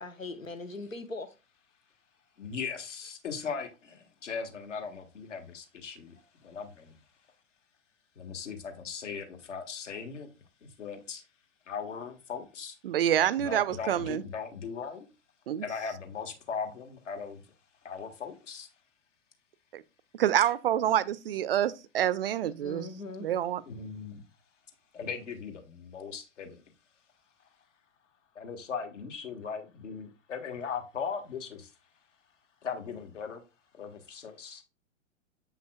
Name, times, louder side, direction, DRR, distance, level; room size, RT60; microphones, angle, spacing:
voice 1, 0.0-1.3 22.6-23.3, left 3 dB, 90° left, 0.9 m, -40 dB
voice 2, 2.4-6.2 6.4-7.0 8.2-10.3 10.6-11.2 11.7-12.8 13.4-15.0 15.6-17.4 17.8-18.7 20.4-20.5 23.7-24.2 24.9-26.6 28.3-31.7 32.6-33.4 33.7-34.6, left 6 dB, 65° left, 1.5 m, -38 dB
voice 3, 12.8-14.2 15.5-15.6 19.7-19.8 20.1-22.9 23.2-23.6, right 11 dB, 50° right, 0.4 m, -27 dB
7.5 x 5.6 x 2.3 m
figure-of-eight pair, 110°, 39 cm